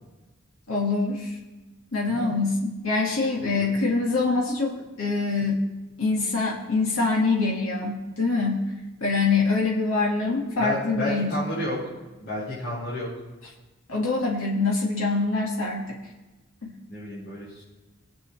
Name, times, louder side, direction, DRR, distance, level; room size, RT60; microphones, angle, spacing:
voice 1, 0.7-1.4 1.9-5.6 6.0-8.6 9.0-11.3 13.9-15.9 16.6-16.7, left 3 dB, 80° left, -2 dB, 1.9 m, -24 dB
voice 2, 3.4-3.7 10.6-11.8 12.2-13.1 16.9-17.6, left 1 dB, 50° left, -12 dB, 4.5 m, -31 dB
21.5 x 8.5 x 3.2 m, 1.1 s
head